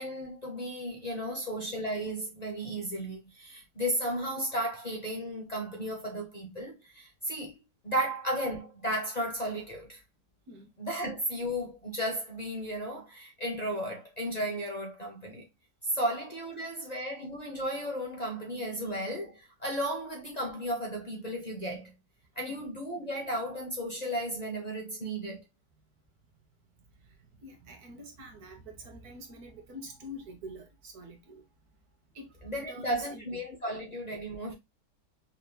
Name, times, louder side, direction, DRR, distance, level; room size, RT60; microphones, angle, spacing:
voice 1, 0.0-7.6 7.8-10.0 10.8-15.5 15.8-21.9 22.4-25.4 32.4-34.5, equal, 30° left, 0.8 m, -34 dB
voice 2, 27.0-31.4 32.1-33.4, equal, 70° right, 1.7 m, -46 dB
5.6 x 3.0 x 2.2 m
omnidirectional pair, 1.7 m